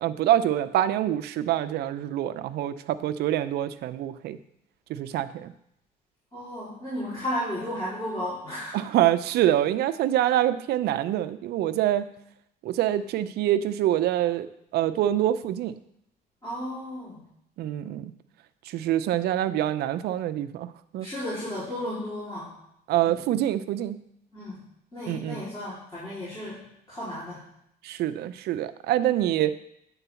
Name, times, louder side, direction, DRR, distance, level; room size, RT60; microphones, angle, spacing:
voice 1, 0.0-4.4 4.9-5.5 8.7-12.1 12.6-14.5 14.7-15.7 17.6-18.1 18.7-20.7 20.9-21.1 22.9-24.0 25.1-25.4 27.8-29.5, right 12 dB, 75° right, 12 dB, 0.6 m, -25 dB
voice 2, 6.3-8.8 16.4-17.3 21.0-22.5 23.0-23.3 24.3-24.6 24.9-26.6 26.9-27.4, equal, 20° left, -11 dB, 3.9 m, -34 dB
9.1 x 3.9 x 6.9 m, 0.76 s
cardioid pair, 110°, 17 cm